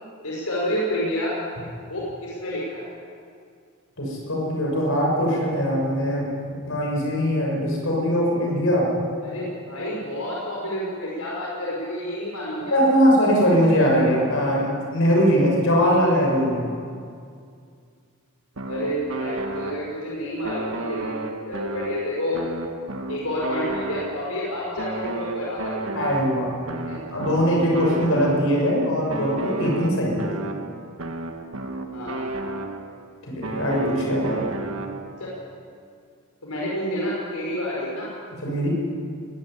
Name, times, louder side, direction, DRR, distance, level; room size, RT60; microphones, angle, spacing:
voice 1, 0.2-1.3 1.9-2.8 9.2-12.8 18.6-21.2 21.5-22.4 23.1-26.0 26.9-27.0 31.9-32.3 35.2-35.3 36.4-38.1, left 1 dB, 80° left, -5 dB, 4.9 m, -29 dB
voice 2, 4.0-6.3 6.7-8.9 12.7-16.6 25.9-26.5 27.1-30.3 33.3-34.4 38.4-38.7, equal, 65° left, -2 dB, 6.8 m, -21 dB
sound 1, 18.6-20.1 20.4-24.4 24.8-28.7 29.1-33.0 33.4-35.3, right 2 dB, 65° right, 1.6 m, -32 dB
20.5 x 13.5 x 9.9 m, 2.3 s
head